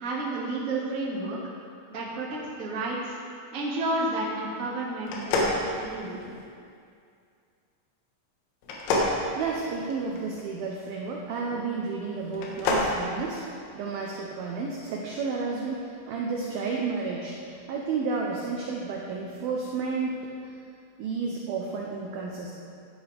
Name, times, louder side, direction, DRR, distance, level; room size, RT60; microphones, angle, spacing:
voice 1, 0.0-1.4 1.9-3.2 3.5-6.2, right 2 dB, 50° right, -5 dB, 0.9 m, -31 dB
sound 1, 5.1-6.4 8.6-10.2 12.3-12.9, left 2 dB, 75° left, 3.7 m, -27 dB
voice 2, 9.4-20.5 21.0-22.5, right 4 dB, 85° right, -1 dB, 2.1 m, -32 dB
16.5 x 10.5 x 3.5 m, 2.3 s
omnidirectional pair, 5.6 m